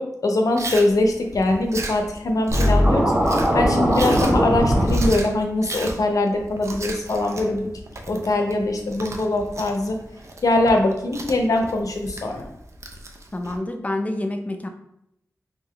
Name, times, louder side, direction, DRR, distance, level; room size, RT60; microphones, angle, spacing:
voice 1, 0.0-7.7 8.1-10.0 10.4-12.5, left 2 dB, 70° left, 3 dB, 0.6 m, -22 dB
Chewing mastication, 0.6-13.6, right 2 dB, 50° right, 0.5 m, -36 dB
Scratching (performance technique), 2.5-5.1, equal, 30° right, 0.8 m, -19 dB
voice 2, 13.3-14.7, left 1 dB, 25° left, 5 dB, 0.4 m, -27 dB
3.6 x 2.5 x 3.3 m, 0.77 s
wide cardioid pair, 75°, 6 cm